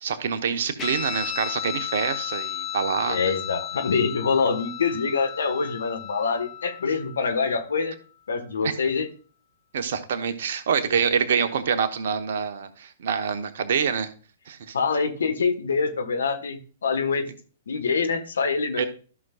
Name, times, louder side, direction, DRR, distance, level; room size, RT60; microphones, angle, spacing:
voice 1, 0.0-3.4 8.6-8.7 9.7-14.1 14.5-14.7 18.8-18.9, right 7 dB, 55° right, 9 dB, 1.1 m, -26 dB
Guitar, 0.8-7.7, left 10 dB, 20° left, 1.7 m, -34 dB
voice 2, 3.1-7.9 8.3-9.1 14.7-17.2 17.7-18.8, left 5 dB, 70° left, 7 dB, 1.4 m, -25 dB
14.0 x 6.2 x 2.4 m, 0.38 s
figure-of-eight pair, 110°, 0 cm